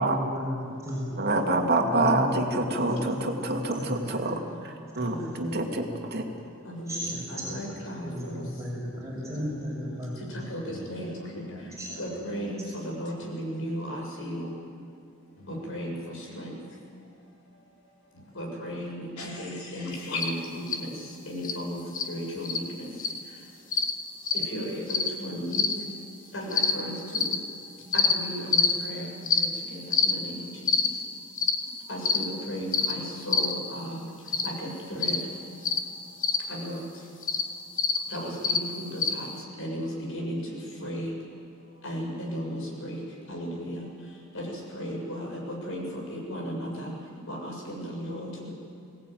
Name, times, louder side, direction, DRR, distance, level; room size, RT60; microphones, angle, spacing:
voice 1, 0.0-1.3 1.8-3.4 3.8-4.1 4.9-5.3 5.7-6.2 6.9-10.8 11.8-11.9, equal, 15° right, -5 dB, 6.5 m, -35 dB
voice 2, 1.2-6.2, right 2 dB, 50° right, 3 dB, 2.4 m, -27 dB
voice 3, 5.0-5.7 6.6-8.4 10.3-10.6 10.9-11.1 12.0-14.5 15.7-15.9 16.3-16.5 18.4-20.6 21.3-21.8 22.1-22.8 24.5-25.6 26.3-27.2 27.9-29.1 29.4-30.5 31.9-34.0 34.4-35.2 36.5-36.8 38.1-39.3 39.6-40.4 40.8-41.1 41.8-43.0 43.3-43.9 44.7-45.8 46.1-46.9 47.3-48.5, equal, 65° left, -1 dB, 6.9 m, -35 dB
voice 4, 7.0-8.1 8.9-9.4 10.7-12.7 13.1-13.3 15.4-16.5 18.1-18.4 19.2-20.5, left 2 dB, 90° left, -2 dB, 4.5 m, -42 dB
sound 1, 20.2-20.3 20.7-20.8 21.4-21.6 21.9-22.1 22.4-22.6 23.0-23.2 23.7-23.9 24.3-24.4 24.9-25.1 25.5-25.7 26.5-26.7 27.1-27.3 27.9-28.1 28.5-28.7 29.3-29.5 29.9-30.1 30.7-30.9 31.4-31.6 32.0-32.2 32.7-32.9 33.3-33.5 34.3-34.5 35.0-35.2 35.6-35.8 36.2-36.4 37.2-37.4 37.8-38.0 38.4-38.6 39.0-39.1, left 6 dB, 40° left, 1.5 m, -24 dB
22.0 x 18.0 x 9.3 m, 2.4 s
head